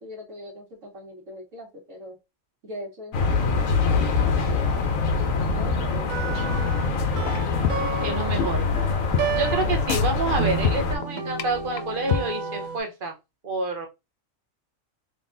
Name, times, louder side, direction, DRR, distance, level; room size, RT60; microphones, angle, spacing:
voice 1, 0.0-2.2 2.6-6.5 8.1-8.5, left 1 dB, 65° right, 1.6 m, -42 dB
sound 1, 3.1-11.0, left 4 dB, 80° left, 1.3 m, -24 dB
sound 2, 6.1-12.8, right 6 dB, 80° right, 1.0 m, -32 dB
sound 3, 7.0-7.4 7.6-8.0 8.4-8.5 8.8-8.9 9.1-9.3 9.5-9.6 9.9-10.4 10.6-11.0 11.4-11.5 11.8-11.9 12.1-12.2, left 8 dB, 65° left, 0.7 m, -24 dB
voice 2, 7.8-8.7 9.4-13.1 13.4-13.9, right 2 dB, 45° right, 0.9 m, -28 dB
3.7 x 3.5 x 2.6 m
omnidirectional pair, 1.4 m